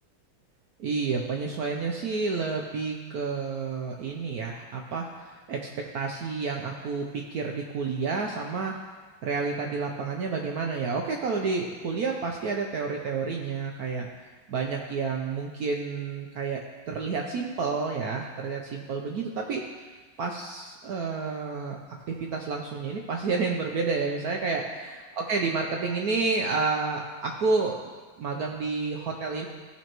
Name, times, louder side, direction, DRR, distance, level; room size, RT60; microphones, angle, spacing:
voice 1, 0.8-8.7 9.2-14.1 14.5-16.6 16.9-19.6 20.2-21.8 22.1-27.8 28.2-29.5, right 4 dB, 80° right, 1 dB, 0.8 m, -30 dB
15.5 x 5.6 x 3.0 m, 1.4 s
omnidirectional pair, 2.4 m